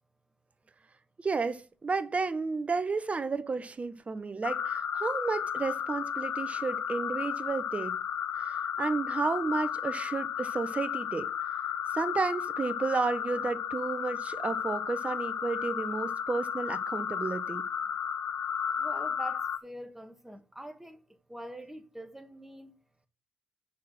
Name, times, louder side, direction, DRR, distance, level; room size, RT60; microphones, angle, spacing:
voice 1, 1.2-8.0 8.3-11.3 11.9-17.6, right 4 dB, 35° right, 1.0 m, -32 dB
sound 1, 4.4-19.6, left 8 dB, 60° left, 0.6 m, -33 dB
voice 2, 18.8-22.7, right 1 dB, 10° right, 1.6 m, -44 dB
6.0 x 4.8 x 5.8 m
hypercardioid pair, 45°, 4 cm